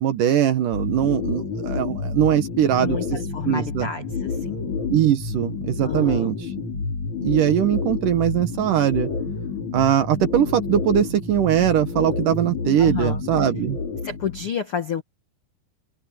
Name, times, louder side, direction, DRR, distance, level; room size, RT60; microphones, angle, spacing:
voice 1, 0.0-3.0 3.5-3.9 4.9-6.5 7.2-9.1 9.7-13.8, right 10 dB, 65° right, 2.5 m, -21 dB
sound 1, 0.7-14.5, left 4 dB, 45° left, 5.5 m, -29 dB
voice 2, 2.8-4.7 5.8-6.3 12.8-13.2 14.0-15.0, left 8 dB, 85° left, 1.2 m, -30 dB
omnidirectional pair, 4.8 m